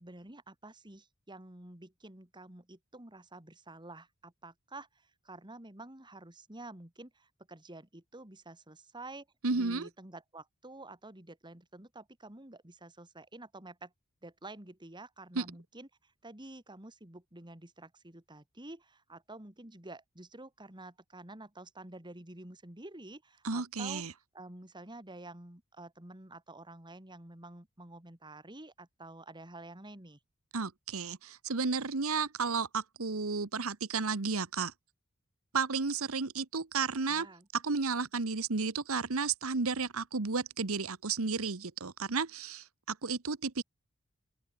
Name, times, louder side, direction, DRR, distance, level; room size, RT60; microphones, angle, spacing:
voice 1, 0.0-9.3 9.5-13.9 14.2-24.0 24.3-30.2 37.1-37.5, right 2 dB, 20° right, 2.6 m, -49 dB
voice 2, 9.4-9.9 15.3-15.4 23.4-24.1 30.5-34.7 35.5-37.3 37.5-43.6, right 4 dB, 75° right, 1.2 m, -33 dB
open air
head